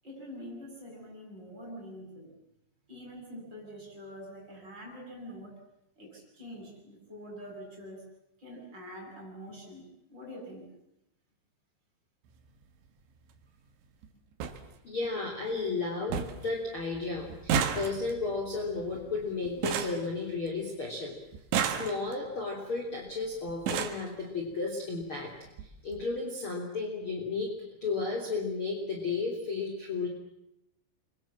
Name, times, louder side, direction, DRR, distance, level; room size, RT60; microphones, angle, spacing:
voice 1, 0.0-2.3 2.9-5.6 6.0-8.0 8.4-10.7, equal, 20° right, 0 dB, 8.5 m, -45 dB
sound 1, 12.3-12.5 13.7-13.8 14.0-14.1 14.4-14.6 15.1-15.5 15.8-15.9 16.1-16.5 16.8-20.8 21.3-22.3 23.1-23.2 23.5-24.1 25.0-25.1 25.5-25.7 25.9-26.0, right 7 dB, 80° right, 3.9 m, -33 dB
voice 2, 14.8-21.1 21.6-25.3 25.6-27.5 27.8-30.1, left 3 dB, 30° left, 0 dB, 3.5 m, -33 dB
29.0 x 24.0 x 7.5 m, 0.82 s
omnidirectional pair, 5.2 m